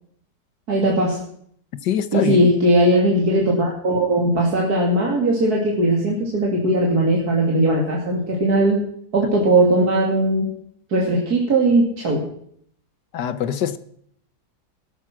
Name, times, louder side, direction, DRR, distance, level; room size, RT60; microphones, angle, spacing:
voice 1, 0.7-1.2 2.1-8.8 9.1-10.5 10.9-12.2, right 1 dB, 60° right, 3.2 m, -19 dB
voice 2, 1.8-2.4 13.1-13.8, left 9 dB, 75° left, 1.6 m, -23 dB
17.5 x 12.5 x 6.0 m
omnidirectional pair, 1.8 m